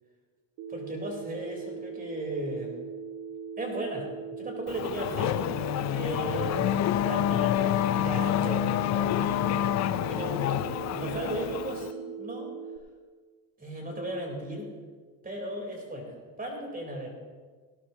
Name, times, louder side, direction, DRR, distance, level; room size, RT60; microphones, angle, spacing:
Telephone, 0.6-12.8, right 6 dB, 65° right, 2.1 m, -40 dB
voice 1, 0.7-2.7 3.6-6.7 7.0-9.5 10.1-12.5 13.6-14.7 15.2-17.1, right 1 dB, 20° right, 1 dB, 4.2 m, -36 dB
Race car auto racing / Accelerating revving vroom, 4.7-11.9, left 12 dB, 40° left, 0.6 m, -28 dB
17.5 x 12.5 x 3.0 m, 1.5 s
supercardioid pair, 95°, 42 cm